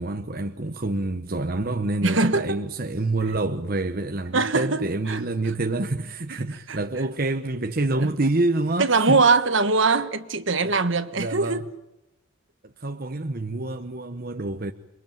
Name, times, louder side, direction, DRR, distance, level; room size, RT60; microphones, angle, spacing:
voice 1, 0.0-9.2 10.6-10.8 11.1-11.6 12.8-14.7, right 2 dB, 45° right, 1.0 m, -27 dB
voice 2, 2.0-2.6 4.3-5.2 5.7-5.8 6.3-6.4 6.7-6.8 8.0-8.1 8.8-11.7, right 3 dB, 65° right, 1.5 m, -22 dB
28.0 x 23.0 x 9.0 m
head